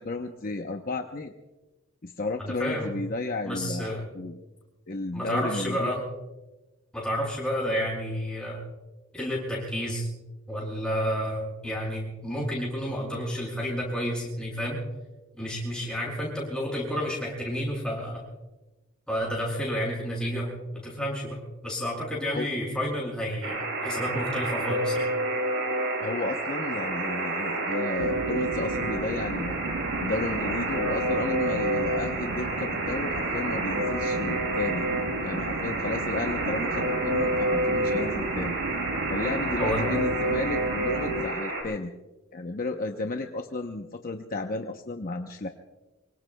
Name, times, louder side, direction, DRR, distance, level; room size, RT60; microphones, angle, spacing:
voice 1, 0.0-1.3 2.0-4.4 4.9-5.9 22.3-22.5 26.0-29.6 30.0-34.8 35.2-38.6 39.1-41.9 42.3-45.5, left 2 dB, 40° left, 4 dB, 0.8 m, -33 dB
voice 2, 2.4-2.9 3.5-4.0 5.1-6.0 6.9-8.6 9.1-10.1 10.5-14.8 15.4-18.2 19.1-25.1 39.6-39.8, equal, 5° left, -4 dB, 6.8 m, -30 dB
Alarm, 23.4-41.6, right 2 dB, 65° right, 5.4 m, -29 dB
sound 1, 28.0-41.3, right 3 dB, 90° right, 0.8 m, -35 dB
26.0 x 24.0 x 2.3 m, 1.1 s
head